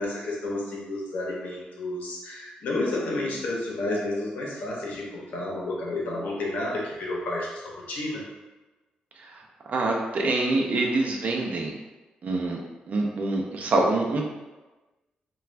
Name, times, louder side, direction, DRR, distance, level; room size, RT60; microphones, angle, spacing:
voice 1, 0.0-8.2, left 2 dB, 80° left, -3 dB, 0.7 m, -31 dB
voice 2, 9.7-11.7 12.2-12.6 12.9-14.3, right 2 dB, 55° right, 0 dB, 0.5 m, -25 dB
2.4 x 2.3 x 3.2 m, 1.2 s
cardioid pair, 75°, 3 cm